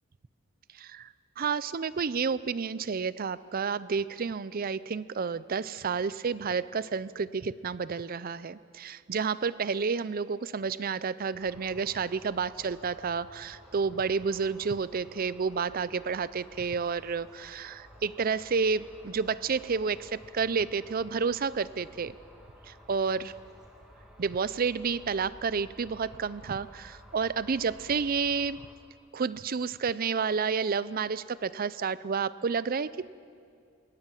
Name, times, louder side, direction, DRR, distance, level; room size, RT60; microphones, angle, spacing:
voice 1, 0.8-1.1 1.4-22.2 22.7-23.3 24.2-28.6 29.1-33.1, right 5 dB, 45° right, 17 dB, 0.5 m, -30 dB
sound 1, 11.4-28.7, equal, 5° right, 2.9 m, -53 dB
21.5 x 18.5 x 7.6 m, 2.3 s
head